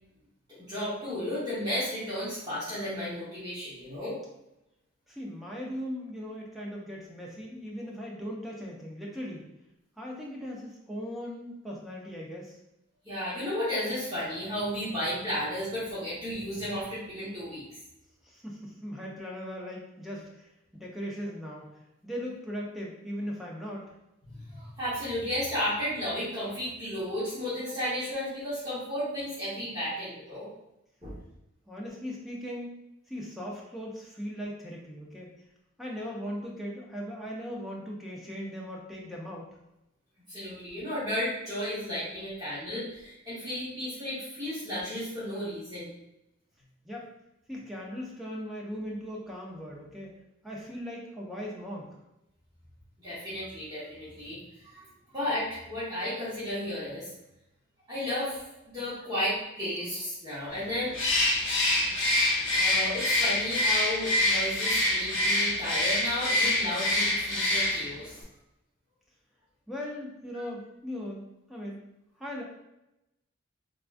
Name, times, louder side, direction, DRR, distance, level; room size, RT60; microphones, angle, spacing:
voice 1, 0.5-4.2 13.0-17.6 24.2-30.5 31.0-31.1 40.3-45.9 53.0-54.4 54.6-54.8 55.1-57.1 57.9-60.9 62.5-68.2 70.3-70.4, left 1 dB, 20° right, -12 dB, 1.0 m, -33 dB
voice 2, 5.1-9.5 10.0-12.6 18.2-21.7 22.0-23.9 31.7-32.7 33.1-35.3 35.8-39.5 46.8-47.1 47.5-50.1 50.4-52.0 69.7-71.2 71.5-71.8 72.2-72.4, equal, ahead, -4 dB, 0.5 m, -38 dB
Bird, 60.9-68.0, left 1 dB, 65° left, 0.7 m, -26 dB
3.4 x 2.3 x 2.5 m, 0.90 s
head